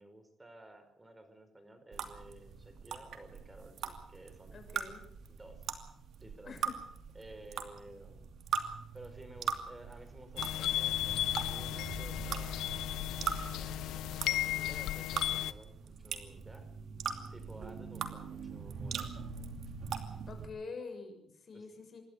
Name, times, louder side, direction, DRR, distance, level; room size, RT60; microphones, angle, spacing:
voice 1, 0.0-4.9 5.3-5.6 6.2-6.6 7.2-8.3 8.9-16.7 17.3-19.1 21.5-21.7, right 1 dB, 15° right, 8 dB, 5.2 m, -54 dB
Kitchen sink - dripping faucet, 1.9-20.5, right 6 dB, 65° right, 2.6 m, -41 dB
voice 2, 4.5-5.1 6.4-6.8 20.3-22.0, left 4 dB, 45° left, 5 dB, 6.5 m, -46 dB
sound 1, 10.4-15.5, left 13 dB, 85° left, 0.8 m, -35 dB
27.0 x 12.0 x 8.3 m, 0.72 s
cardioid pair, 90°, 0 cm